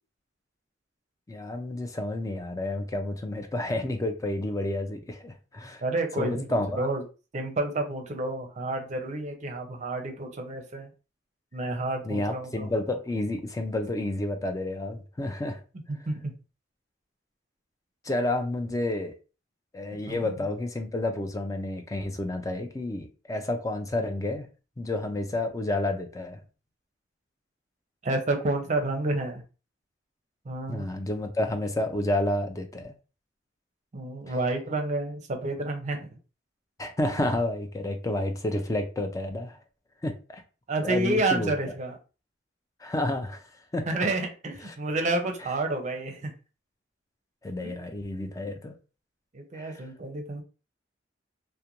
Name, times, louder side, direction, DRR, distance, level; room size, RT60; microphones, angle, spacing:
voice 1, 1.3-5.8 6.2-6.9 12.0-15.6 18.0-19.1 19.7-24.5 24.8-26.4 30.7-32.9 36.8-39.6 40.0-40.4 40.8-41.5 42.8-43.5 43.7-44.1 44.6-44.8 47.4-48.7 49.5-49.9, left 1 dB, 20° left, 0.4 m, -30 dB
voice 2, 5.8-7.0 7.3-10.9 11.5-12.7 15.9-16.3 19.9-20.3 28.0-29.4 30.5-30.9 33.9-36.1 40.7-42.0 43.9-46.3 47.6-47.7 49.3-50.4, right 2 dB, 40° right, 0.6 m, -30 dB
2.4 x 2.1 x 2.9 m
head